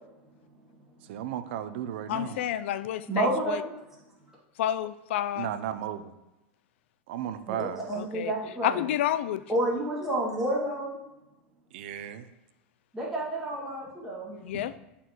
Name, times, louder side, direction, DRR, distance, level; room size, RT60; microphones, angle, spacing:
voice 1, 1.0-2.5 5.4-6.1 7.1-7.9 11.7-12.3, right 10 dB, 70° right, 11 dB, 0.5 m, -35 dB
voice 2, 2.1-3.6 4.6-5.5 7.9-8.3 8.6-9.4 14.4-14.7, left 11 dB, 75° left, 14 dB, 0.4 m, -29 dB
voice 3, 3.1-3.8 7.5-8.8 9.5-11.0 12.9-14.4, right 1 dB, 5° right, -8 dB, 2.1 m, -30 dB
11.0 x 4.2 x 3.1 m, 0.96 s
hypercardioid pair, 110°, 7 cm